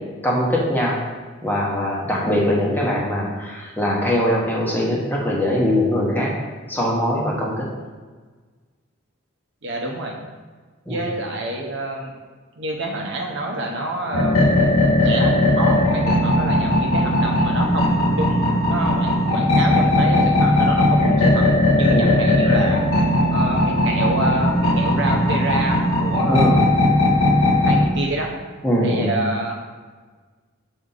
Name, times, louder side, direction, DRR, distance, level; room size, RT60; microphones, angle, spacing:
voice 1, 0.2-1.0 1.4-6.3 6.7-7.7 10.9-11.0 21.9-22.2 26.3-26.6 28.6-29.2, equal, 10° left, -4 dB, 1.0 m, -21 dB
voice 2, 9.6-10.1 10.9-12.1 12.6-14.5 15.0-21.4 21.7-22.8 23.3-26.6 27.6-28.3 28.8-29.6, right 2 dB, 55° right, 1 dB, 0.9 m, -27 dB
sound 1, 14.1-27.8, left 1 dB, 85° left, 1.3 m, -18 dB
6.6 x 4.2 x 3.9 m, 1.4 s
head